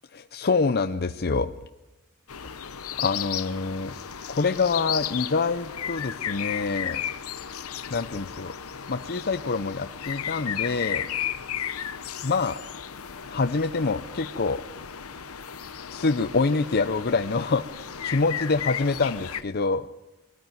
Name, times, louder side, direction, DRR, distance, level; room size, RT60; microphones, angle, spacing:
voice 1, 0.3-1.5 3.0-4.0 4.3-7.0 7.9-8.5 8.9-11.1 12.2-12.6 13.3-14.6 15.9-19.9, left 4 dB, 45° left, 9 dB, 0.6 m, -26 dB
sound 1, 2.3-19.4, left 9 dB, 75° left, 1.0 m, -34 dB
23.0 x 14.0 x 9.3 m, 1.0 s
head